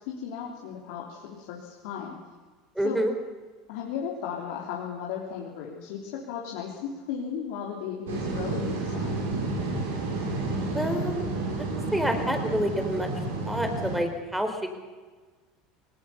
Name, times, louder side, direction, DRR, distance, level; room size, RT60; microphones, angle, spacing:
voice 1, 0.1-2.2 2.8-3.0 3.7-9.2, left 7 dB, 70° left, -2 dB, 3.3 m, -35 dB
voice 2, 2.8-3.1 10.7-11.2 11.6-13.1 13.4-14.6, equal, 5° right, 6 dB, 4.5 m, -28 dB
sound 1, 8.1-14.0, right 3 dB, 85° right, 5.8 m, -30 dB
21.0 x 19.5 x 7.1 m, 1.4 s
hypercardioid pair, 90°, 0 cm